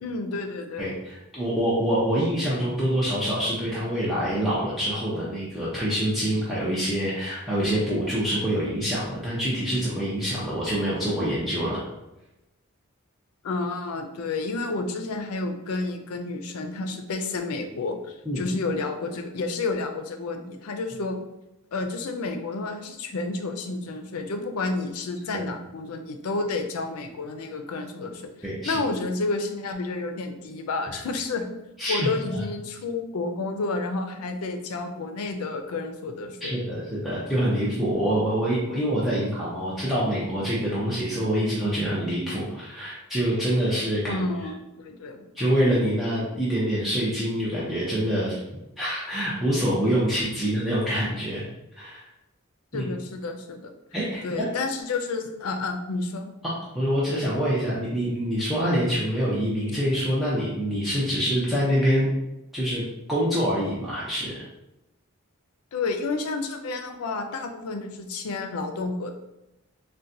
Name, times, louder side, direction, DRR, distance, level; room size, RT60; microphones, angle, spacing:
voice 1, 0.0-1.0 13.4-21.2 21.7-28.3 28.6-31.5 31.9-36.6 44.1-45.2 52.7-53.7 54.2-56.3 65.7-69.1, left 3 dB, 90° left, 6 dB, 0.4 m, -30 dB
voice 2, 0.8-11.8 18.3-18.4 28.4-28.8 30.9-31.0 31.8-32.1 36.4-44.2 45.3-48.4 48.8-51.4 51.8-52.0 52.7-52.8 53.9-54.5 56.4-62.1 62.5-62.8 63.1-64.4, equal, ahead, -9 dB, 0.5 m, -25 dB
4.0 x 2.2 x 2.6 m, 0.94 s
head